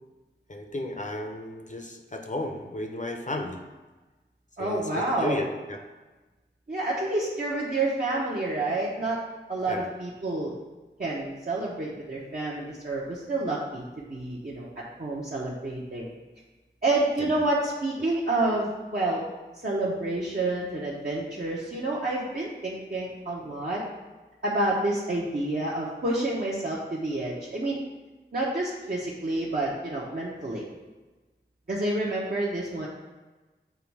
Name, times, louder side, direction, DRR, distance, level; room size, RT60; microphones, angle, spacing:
voice 1, 0.5-3.6 4.6-5.8 9.7-9.9 17.2-17.3, left 1 dB, 40° left, 4 dB, 0.6 m, -34 dB
voice 2, 4.6-5.4 6.7-9.2 9.5-10.5 11.0-14.7 15.0-16.1 16.8-19.2 19.6-23.8 24.4-27.8 28.3-30.6 31.7-32.9, right 2 dB, 50° right, -6 dB, 0.9 m, -29 dB
6.9 x 3.1 x 4.7 m, 1.2 s
wide cardioid pair, 55°, 20 cm